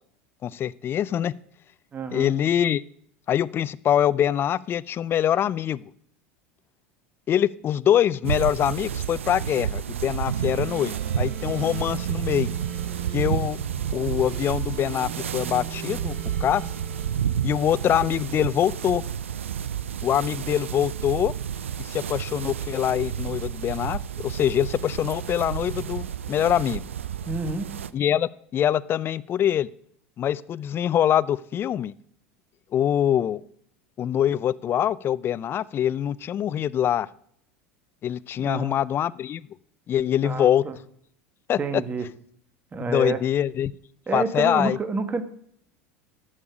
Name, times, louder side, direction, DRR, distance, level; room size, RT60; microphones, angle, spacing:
voice 1, 0.4-1.3 2.1-2.8 3.3-5.8 7.3-12.5 13.1-13.6 13.9-16.1 16.4-16.6 17.4-19.0 20.0-21.3 21.8-26.8 27.9-29.7 30.2-31.9 32.7-33.4 34.0-37.1 38.0-39.5 39.9-40.6 41.5-41.6 42.9-43.7 44.1-44.8, left 10 dB, 35° left, 19 dB, 0.4 m, -24 dB
voice 2, 1.9-2.3 27.3-27.7 38.4-38.8 40.2-40.8 41.6-42.1 42.7-43.2 44.1-45.2, right 3 dB, 25° right, 10 dB, 1.4 m, -29 dB
sound 1, 8.2-27.9, right 9 dB, 90° right, 0.4 m, -30 dB
sound 2, 10.3-18.2, right 8 dB, 55° right, 3.2 m, -39 dB
11.5 x 6.6 x 5.1 m, 0.66 s
hypercardioid pair, 80°, 7 cm